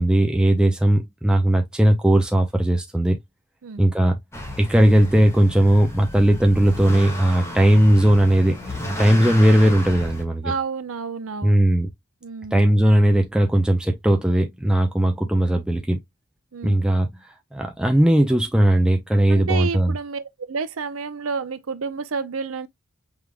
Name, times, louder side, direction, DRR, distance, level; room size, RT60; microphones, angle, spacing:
voice 1, 0.0-3.2 3.8-4.2 4.6-10.5 11.4-11.9 12.5-16.0 16.6-17.1 17.5-19.9, right 1 dB, 5° right, 0.6 m, -18 dB
Motor vehicle (road) / Accelerating revving vroom, 4.3-10.2, left 1 dB, 15° left, 1.1 m, -32 dB
voice 2, 10.4-11.6 12.2-12.6 16.5-16.8 19.3-22.7, right 5 dB, 80° right, 0.6 m, -30 dB
4.8 x 3.7 x 2.2 m
head